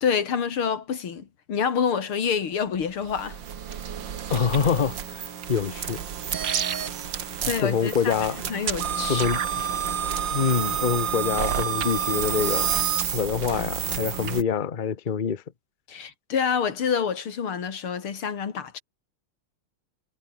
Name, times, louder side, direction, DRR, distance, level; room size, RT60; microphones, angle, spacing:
voice 1, 0.0-3.4 7.4-8.1 8.5-9.3 15.9-18.8, left 7 dB, 75° left, 3.1 m, -27 dB
sound 1, 2.8-14.4, right 8 dB, 60° right, 2.1 m, -29 dB
voice 2, 4.3-5.2 5.5-6.0 7.4-8.4 9.1-9.4 10.3-12.7 13.1-15.4, left 6 dB, 30° left, 0.9 m, -25 dB
omnidirectional pair, 2.4 m